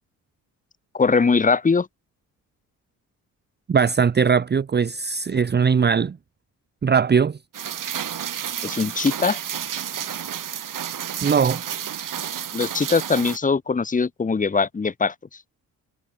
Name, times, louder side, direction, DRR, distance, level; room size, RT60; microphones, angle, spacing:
voice 1, 0.9-1.9 8.6-9.4 12.5-15.1, left 4 dB, 25° left, 1.0 m, -21 dB
voice 2, 3.7-6.2 6.8-7.4 11.2-11.6, right 6 dB, 30° right, 0.8 m, -20 dB
Rain, 7.5-13.4, right 9 dB, 65° right, 5.9 m, -31 dB
supercardioid pair, 65°, 35 cm